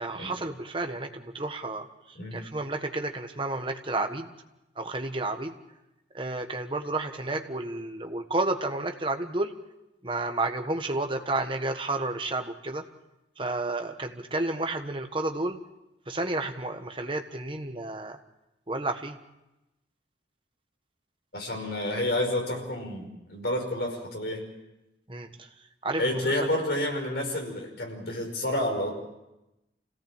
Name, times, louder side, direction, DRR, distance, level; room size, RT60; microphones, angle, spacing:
voice 1, 0.0-4.3 4.7-5.6 6.1-9.5 10.0-12.8 13.4-15.6 16.1-18.2 18.7-19.2 25.1-25.5 25.8-26.3, right 2 dB, 30° right, 5 dB, 1.4 m, -31 dB
voice 2, 21.3-24.5 26.0-28.9, left 1 dB, 65° left, 1 dB, 5.5 m, -29 dB
26.5 x 17.5 x 7.4 m, 0.96 s
head